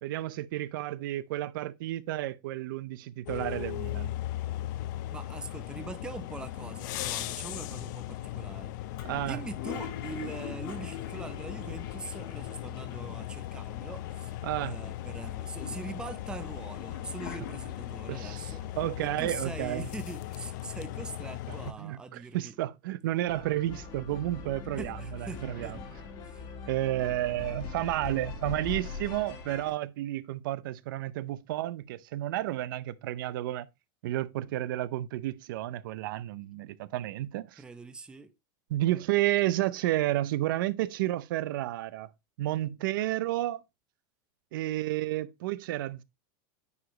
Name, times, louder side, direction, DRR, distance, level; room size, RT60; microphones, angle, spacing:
voice 1, 0.0-4.1 9.0-9.4 14.4-14.8 18.1-19.9 21.5-25.8 26.7-33.7 34.0-37.6 38.7-42.1 42.4-43.6 44.5-46.0, right 14 dB, 75° right, 0.6 m, -31 dB
sound 1, 3.3-21.7, left 14 dB, 60° left, 0.6 m, -38 dB
voice 2, 5.1-8.7 9.2-22.5 24.8-25.8 26.2-26.4 37.6-38.3, right 3 dB, 5° right, 0.6 m, -43 dB
Toilet flush, 8.9-13.3 13.6-13.7 13.9-14.7 15.2-18.1, left 8 dB, 75° left, 1.9 m, -44 dB
sound 2, 23.3-29.7, left 4 dB, 40° left, 1.6 m, -41 dB
9.6 x 4.9 x 3.0 m
supercardioid pair, 165°, 11 cm